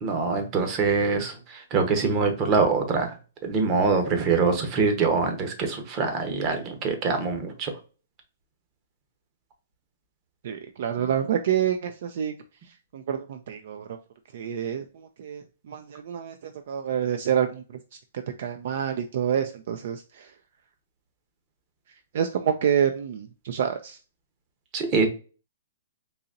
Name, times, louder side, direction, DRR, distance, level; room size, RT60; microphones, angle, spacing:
voice 1, 0.0-3.1 3.4-7.7 11.0-11.1 24.7-25.1, right 4 dB, 30° right, 6 dB, 0.9 m, -24 dB
voice 2, 10.4-12.3 12.9-14.0 14.3-17.6 18.4-20.3 22.1-24.0, right 9 dB, 60° right, 8 dB, 0.4 m, -27 dB
3.9 x 2.9 x 2.5 m, 0.36 s
hypercardioid pair, 145°, 0 cm